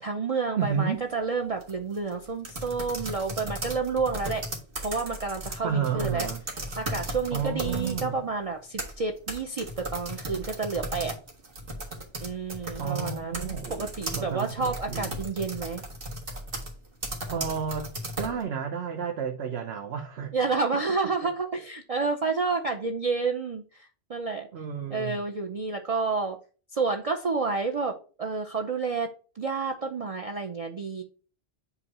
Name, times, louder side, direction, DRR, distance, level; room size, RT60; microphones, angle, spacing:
voice 1, 0.0-4.4 4.8-6.3 6.8-11.1 12.2-15.8 20.3-24.5 24.9-26.4 26.7-29.1 29.4-31.0, right 4 dB, 40° right, 0.6 m, -30 dB
sound 1, 0.6-0.9 1.5-8.1 8.5-18.4, right 1 dB, 60° right, 1.7 m, -36 dB
voice 2, 0.6-1.0 5.6-6.4 7.3-8.2 12.8-15.2 17.3-17.9 18.2-20.3 24.5-25.2, right 7 dB, 80° right, 1.1 m, -31 dB
8.2 x 2.8 x 5.3 m
omnidirectional pair, 1.1 m